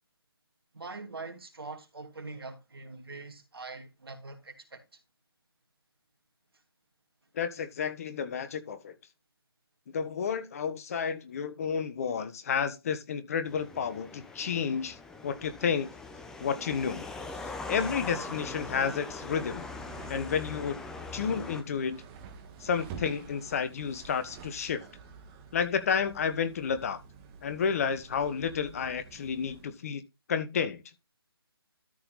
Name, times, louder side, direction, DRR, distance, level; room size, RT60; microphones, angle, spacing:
voice 1, 0.7-4.8, right 3 dB, 75° right, 2.8 m, -43 dB
voice 2, 7.3-8.9 9.9-15.0 15.2-15.9 16.4-17.0 17.7-19.7 20.1-20.8 21.1-22.0 22.6-24.8 25.5-27.0 27.4-30.0 30.3-30.8, left 6 dB, 40° left, 1.3 m, -31 dB
sound 1, 13.5-21.6, left 3 dB, 5° left, 0.8 m, -41 dB
sound 2, 18.0-29.8, right 5 dB, 20° right, 1.4 m, -49 dB
13.0 x 4.5 x 4.0 m
figure-of-eight pair, 150°, 13 cm